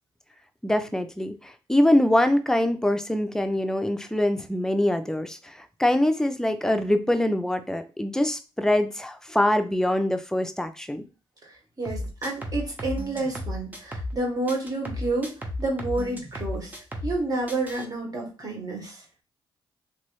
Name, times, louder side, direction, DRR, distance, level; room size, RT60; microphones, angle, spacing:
voice 1, 0.6-11.0, left 1 dB, 5° left, 7 dB, 0.4 m, -24 dB
voice 2, 11.4-19.0, right 2 dB, 40° right, 0 dB, 1.2 m, -30 dB
sound 1, 11.9-14.2 14.5-17.2 17.5-17.9, left 1 dB, 20° right, 0.8 m, -34 dB
3.0 x 2.7 x 3.0 m, 0.33 s
cardioid pair, 80°, 10 cm